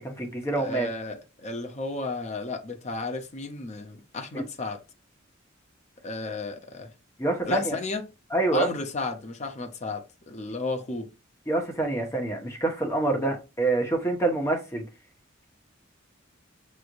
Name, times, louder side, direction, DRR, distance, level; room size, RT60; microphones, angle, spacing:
voice 1, 0.0-0.9 4.3-4.4 7.2-7.8 8.3-8.7 11.5-14.8, right 2 dB, 15° left, 1.2 m, -26 dB
voice 2, 0.6-4.8 6.0-6.9 7.4-8.0 8.5-11.1, left 3 dB, 35° left, 0.7 m, -33 dB
6.0 x 3.2 x 2.5 m
head